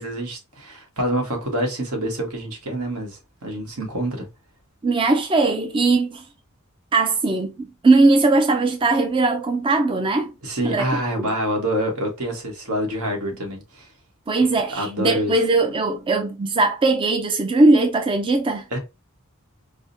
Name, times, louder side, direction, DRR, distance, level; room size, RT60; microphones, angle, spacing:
voice 1, 0.0-4.3 10.4-13.9 14.7-15.3 18.7-18.8, right 1 dB, 75° right, 1.2 m, -26 dB
voice 2, 4.8-6.2 6.9-10.3 10.6-11.0 14.3-18.6, right 3 dB, 20° right, 0.4 m, -19 dB
4.7 x 2.1 x 2.6 m
head